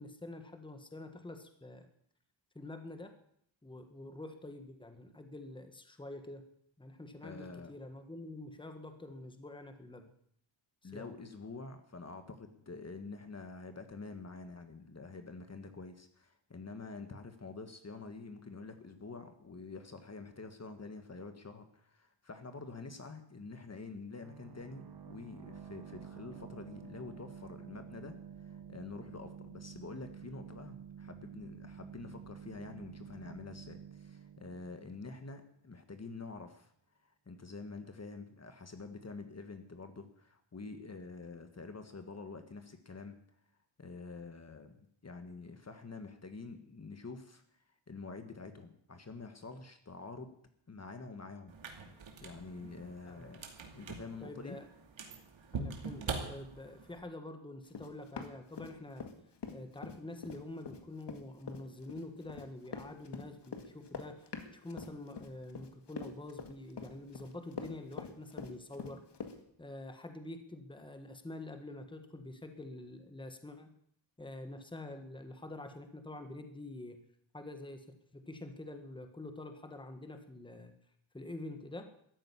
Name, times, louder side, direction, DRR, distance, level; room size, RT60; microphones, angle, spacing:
voice 1, 0.0-1.9 2.5-3.2 3.6-6.5 6.8-10.1 10.8-11.1 53.1-53.3 54.2-54.7 55.5-59.1 59.5-69.0 69.6-73.7 74.2-77.0 77.3-80.7 81.1-81.9, left 2 dB, 10° left, 6 dB, 1.5 m, -47 dB
voice 2, 7.2-7.7 10.8-36.7 37.0-43.2 43.8-50.3 50.7-51.5 51.9-53.5 53.7-54.6, left 3 dB, 35° left, 8 dB, 1.5 m, -47 dB
sound 1, 24.2-35.7, right 8 dB, 50° right, 1.3 m, -50 dB
sound 2, 51.5-57.0, right 4 dB, 80° right, 2.5 m, -43 dB
Run, 57.7-59.1 59.4-69.4, left 6 dB, 60° left, 2.0 m, -44 dB
14.0 x 9.0 x 9.8 m, 0.69 s
wide cardioid pair, 120°, 46 cm